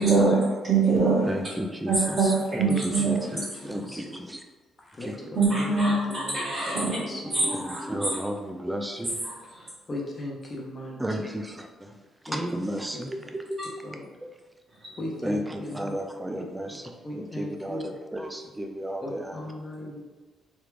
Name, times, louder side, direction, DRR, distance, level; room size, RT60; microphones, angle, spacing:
voice 1, 0.0-1.2 1.9-3.4 5.3-7.0 7.3-8.2 9.2-9.3, right 3 dB, 50° right, -11 dB, 1.2 m, -24 dB
voice 2, 1.3-2.2 2.5-3.2 3.6-4.4 5.0-5.1 7.1-9.2 11.0-11.7 12.3-13.6 15.2-19.3, equal, 10° right, 4 dB, 0.3 m, -33 dB
voice 3, 2.7-4.1 4.8-7.7 9.9-11.2 12.3-12.4 12.9-13.0 13.8-14.1 15.0-16.0 16.4-16.5 17.0-17.9 19.0-20.0, left 1 dB, 30° left, -2 dB, 0.7 m, -37 dB
3.4 x 2.4 x 3.1 m, 1.3 s
cardioid pair, 90°, 0 cm